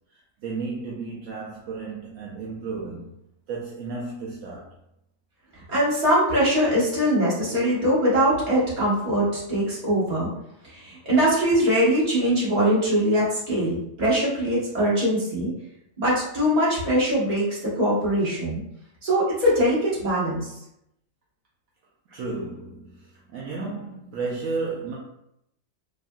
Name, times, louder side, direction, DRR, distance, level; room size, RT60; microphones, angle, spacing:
voice 1, 0.1-3.2 3.5-4.8 22.1-25.0, right 4 dB, 70° right, -4 dB, 0.9 m, -33 dB
voice 2, 5.5-10.3 10.6-15.5 16.0-18.6 19.0-20.5, equal, 30° right, -8 dB, 1.3 m, -22 dB
3.6 x 2.5 x 2.2 m, 0.79 s
omnidirectional pair, 1.5 m